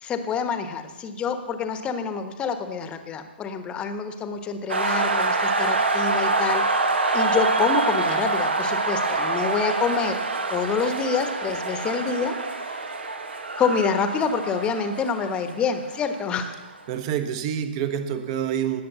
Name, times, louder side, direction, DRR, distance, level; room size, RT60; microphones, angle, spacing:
voice 1, 0.0-6.8 7.1-10.2 10.5-12.8 13.6-16.6, left 5 dB, 15° left, 8 dB, 1.2 m, -27 dB
sound 1, 4.7-16.4, right 3 dB, 75° right, 1.8 m, -26 dB
voice 2, 16.9-18.8, right 9 dB, 35° right, 9 dB, 1.3 m, -27 dB
19.0 x 7.5 x 6.9 m, 1.3 s
figure-of-eight pair, 125°, 6 cm